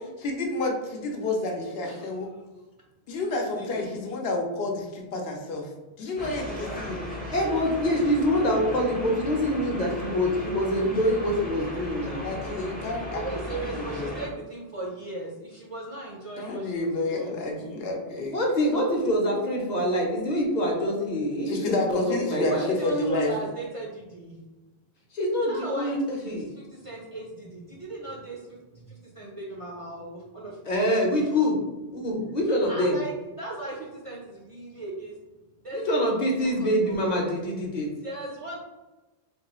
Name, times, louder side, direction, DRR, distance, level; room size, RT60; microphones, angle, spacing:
voice 1, 0.2-2.3 3.1-5.7 6.0-7.0 12.2-13.2 13.5-14.2 16.4-18.4 21.5-23.5, left 2 dB, 75° left, 1 dB, 0.9 m, -30 dB
voice 2, 3.6-3.9 6.5-6.7 13.1-17.4 22.5-24.4 25.4-26.0 26.6-28.4 28.9-30.5 32.7-33.1 33.4-35.1 35.6-35.9 36.4-37.2 38.0-38.6, right 2 dB, 40° right, -4 dB, 0.5 m, -37 dB
sound 1, 6.2-14.3, left 1 dB, 10° left, 0.5 m, -36 dB
voice 3, 7.3-12.3 18.3-22.7 25.1-26.5 30.6-31.6 31.9-33.0 35.7-37.9, equal, 45° left, -1 dB, 0.8 m, -25 dB
3.5 x 2.3 x 3.0 m, 1.1 s
omnidirectional pair, 1.0 m